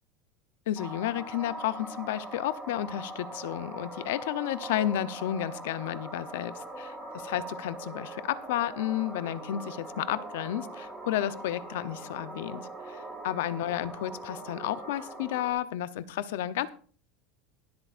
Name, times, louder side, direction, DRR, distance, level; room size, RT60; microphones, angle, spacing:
voice 1, 0.7-6.9 7.2-16.7, left 12 dB, 80° left, 15 dB, 0.7 m, -32 dB
sound 1, 0.8-15.5, right 2 dB, 5° right, 3.5 m, -42 dB
22.0 x 7.9 x 2.5 m, 0.43 s
supercardioid pair, 160°, 0 cm